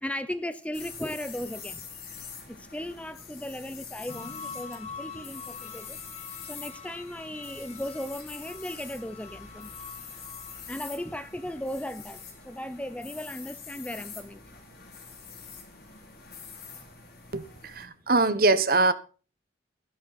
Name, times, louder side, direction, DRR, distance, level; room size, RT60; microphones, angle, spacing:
voice 1, 0.0-1.8 2.5-6.0 6.4-9.7 10.7-14.4, left 1 dB, 5° left, 0.7 m, -36 dB
sound 1, 0.7-17.9, left 6 dB, 55° left, 5.4 m, -45 dB
sound 2, 4.1-13.4 13.8-13.9, left 5 dB, 35° left, 1.9 m, -46 dB
voice 2, 17.3-18.9, right 3 dB, 50° right, 1.1 m, -23 dB
13.5 x 11.5 x 4.1 m
head